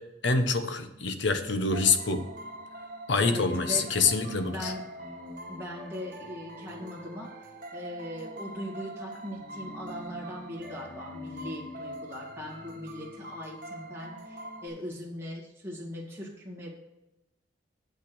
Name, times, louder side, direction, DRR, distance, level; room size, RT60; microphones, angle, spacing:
voice 1, 0.2-2.2 3.1-4.7, left 4 dB, 70° left, 8 dB, 0.9 m, -26 dB
sound 1, 1.7-14.7, right 1 dB, 45° right, 1.6 m, -43 dB
voice 2, 3.2-3.9 4.5-4.8 5.5-7.3 7.7-16.7, left 1 dB, 15° right, -4 dB, 1.9 m, -40 dB
8.3 x 6.0 x 6.1 m, 0.95 s
head